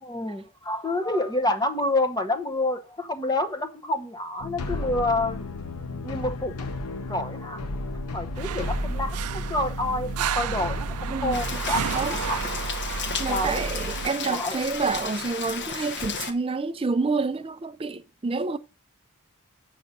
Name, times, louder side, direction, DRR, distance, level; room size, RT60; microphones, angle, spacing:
voice 1, 0.0-5.5 6.0-6.7 7.1-7.6 8.1-12.4 13.3-13.6 14.2-14.6, left 2 dB, 20° left, 0.9 m, -28 dB
sound 1, 4.4-11.6, left 2 dB, 90° left, 0.8 m, -34 dB
sound 2, 8.3-14.1, right 5 dB, 80° right, 0.5 m, -31 dB
voice 2, 11.1-11.6 11.9-12.1 13.2-18.6, right 4 dB, 25° right, 0.4 m, -28 dB
Rain, 11.3-16.3, left 5 dB, 50° left, 0.9 m, -33 dB
7.6 x 6.4 x 5.3 m
head